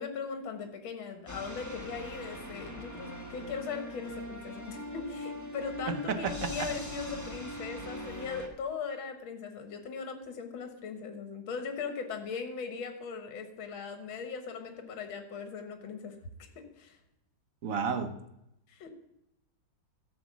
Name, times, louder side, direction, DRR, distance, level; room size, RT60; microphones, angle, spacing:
voice 1, 0.0-16.2 16.6-17.0 18.7-18.9, left 5 dB, 80° left, 6 dB, 2.0 m, -39 dB
sound 1, 1.3-8.5, equal, 15° left, 0.7 m, -41 dB
voice 2, 5.9-6.7 17.6-18.1, right 6 dB, 55° right, 8 dB, 1.1 m, -32 dB
13.0 x 5.2 x 7.2 m, 0.83 s
omnidirectional pair, 2.2 m